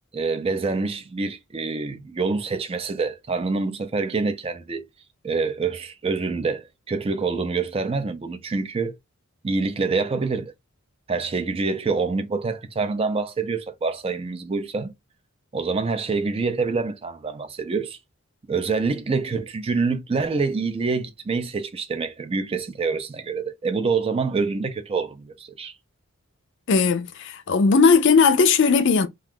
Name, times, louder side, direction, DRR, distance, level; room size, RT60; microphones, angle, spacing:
voice 1, 0.1-4.8 5.2-9.0 9.4-10.5 11.1-14.9 15.5-18.0 18.5-25.8, right 4 dB, 25° right, 0.3 m, -26 dB
voice 2, 26.7-29.1, left 5 dB, 55° left, 0.4 m, -17 dB
2.4 x 2.3 x 3.4 m
head